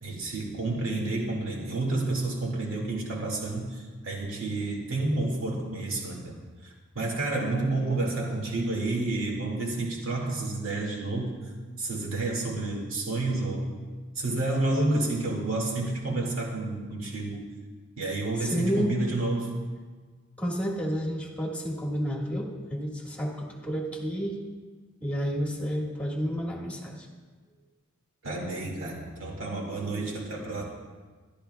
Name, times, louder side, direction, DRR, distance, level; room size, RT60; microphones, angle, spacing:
voice 1, 0.0-6.4 6.6-11.3 11.8-13.7 14.1-17.5 18.0-19.5 28.2-30.6, right 2 dB, 75° right, -2 dB, 2.1 m, -30 dB
voice 2, 18.4-18.9 20.4-24.4 25.0-27.1, equal, 5° left, -3 dB, 1.6 m, -30 dB
23.5 x 11.5 x 2.3 m, 1.4 s
head